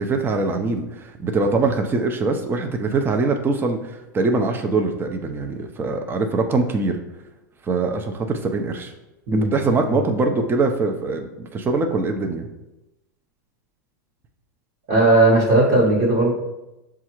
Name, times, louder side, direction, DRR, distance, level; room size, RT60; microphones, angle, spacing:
voice 1, 0.0-7.0 7.6-8.9 9.3-12.5, right 3 dB, 20° right, 5 dB, 0.6 m, -23 dB
voice 2, 14.9-16.3, right 2 dB, 50° right, -5 dB, 1.2 m, -16 dB
7.1 x 2.4 x 3.0 m, 0.96 s
hypercardioid pair, 105°, 10 cm